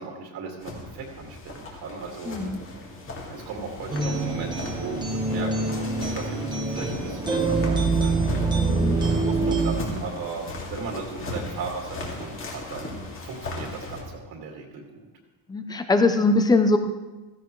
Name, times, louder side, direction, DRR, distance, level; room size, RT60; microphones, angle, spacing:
voice 1, 0.0-2.4 3.3-8.2 9.1-12.9 13.2-15.1, right 5 dB, 55° right, 1 dB, 2.2 m, -37 dB
sound 1, 0.6-14.0, left 2 dB, 25° left, 2.2 m, -37 dB
voice 2, 2.3-2.6 8.7-9.0 15.5-16.8, left 2 dB, 10° left, 7 dB, 0.4 m, -21 dB
sound 2, 3.9-9.8, right 3 dB, 10° right, 1.1 m, -25 dB
16.0 x 15.0 x 3.1 m, 1.1 s
cardioid pair, 180°, 47 cm